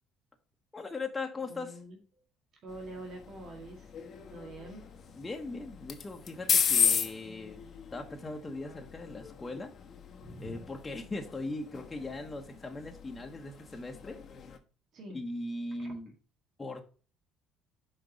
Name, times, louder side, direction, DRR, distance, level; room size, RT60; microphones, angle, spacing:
voice 1, 0.7-1.8 5.2-7.6 7.9-9.7 10.4-14.2 15.1-16.1 16.6-16.8, left 2 dB, 20° left, 1.1 m, -39 dB
voice 2, 1.5-2.0 2.6-3.9 4.3-4.8 10.2-10.6 14.9-15.2 15.8-15.9, right 1 dB, 55° right, 1.9 m, -45 dB
sound 1, 2.7-14.6, left 7 dB, 50° left, 1.1 m, -35 dB
6.1 x 4.5 x 5.3 m
hypercardioid pair, 65°, 0 cm